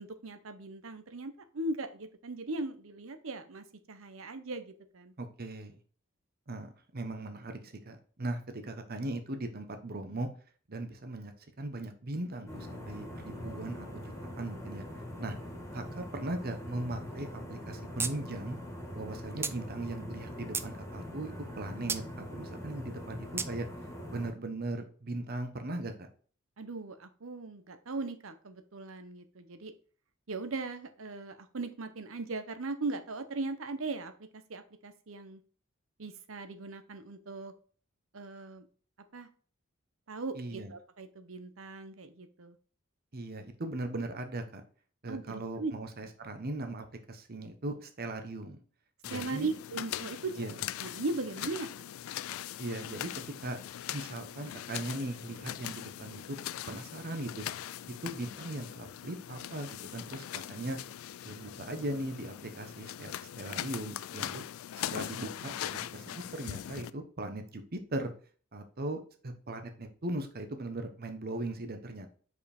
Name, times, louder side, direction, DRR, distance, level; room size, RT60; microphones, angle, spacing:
voice 1, 0.0-5.1 26.6-29.7 30.3-34.1 34.5-35.4 36.0-37.5 38.1-38.6 39.1-39.3 40.1-42.5 45.1-45.7 49.1-50.3 50.8-51.7, right 3 dB, 70° right, 9 dB, 0.8 m, -38 dB
voice 2, 5.2-5.8 6.5-10.3 10.7-14.8 15.2-15.3 15.7-18.6 18.9-23.7 24.1-25.9 40.3-40.7 43.1-44.6 45.0-48.6 49.0-49.5 50.3-50.6 52.6-53.1 53.4-53.6 53.9-56.4 56.7-57.4 58.0-60.8 61.2-64.4 64.9-68.1 68.5-72.1, right 2 dB, 50° right, 7 dB, 1.0 m, -39 dB
sound 1, 12.5-24.3, equal, 15° left, 1.8 m, -43 dB
sound 2, 18.0-18.1 18.4-18.5 19.4-19.6 20.2-20.7 21.9-22.0 23.4-23.5, right 5 dB, 10° right, 0.3 m, -33 dB
sound 3, 49.0-66.9, left 11 dB, 80° left, 0.3 m, -41 dB
5.2 x 4.9 x 4.3 m, 0.42 s
head